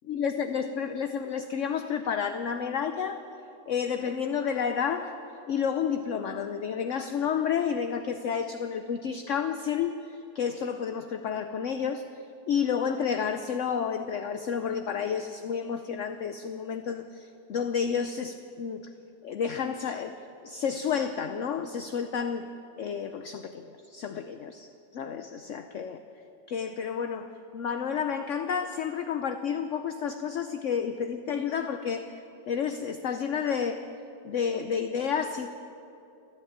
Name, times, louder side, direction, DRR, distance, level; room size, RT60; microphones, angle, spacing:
voice 1, 0.1-3.2 3.7-5.2 5.5-12.0 12.5-18.9 19.2-20.2 20.4-24.7 24.9-26.0 26.5-32.1 32.5-33.8 34.2-35.5, left 7 dB, 60° left, 8 dB, 0.8 m, -30 dB
29.5 x 10.5 x 8.8 m, 2.8 s
omnidirectional pair, 2.0 m